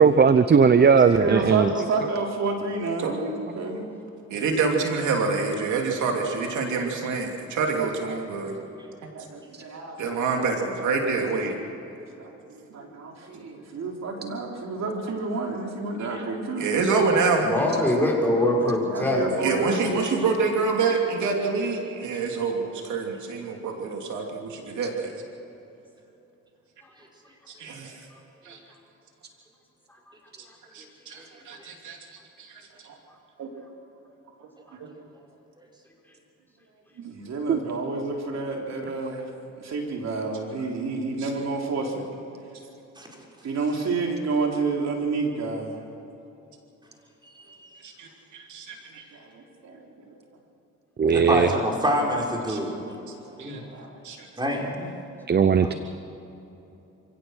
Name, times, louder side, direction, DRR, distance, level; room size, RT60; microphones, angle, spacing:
voice 1, 0.0-1.7 9.5-9.6 37.5-37.6 51.0-51.5 55.3-55.7, right 6 dB, 35° right, 11 dB, 0.8 m, -17 dB
voice 2, 1.2-3.9 8.7-8.8 9.1-10.3 11.8-16.8 17.8-17.9 18.9-20.0 37.0-39.3 39.6-42.1 43.4-45.8 49.1-50.2 53.2-54.0, right 3 dB, 65° right, 0 dB, 3.7 m, -30 dB
voice 3, 3.0-3.4 4.3-8.5 10.0-11.6 16.0-16.2 16.6-17.5 19.4-25.1 27.6-27.9 28.4-28.6 30.7-32.0 32.4-33.0 33.4-33.5 34.7-34.9 37.0-37.1 47.8-49.0 52.5-52.6 53.4-53.6 54.0-54.2, right 4 dB, 85° right, 1 dB, 3.0 m, -27 dB
voice 4, 17.4-19.6, left 1 dB, 5° left, -3 dB, 5.8 m, -23 dB
voice 5, 51.1-52.7 53.0-53.1 53.4-53.6 54.4-54.9 55.6-55.8, equal, 15° right, -1 dB, 4.8 m, -26 dB
27.0 x 16.5 x 6.5 m, 3.0 s
cardioid pair, 90°, 29 cm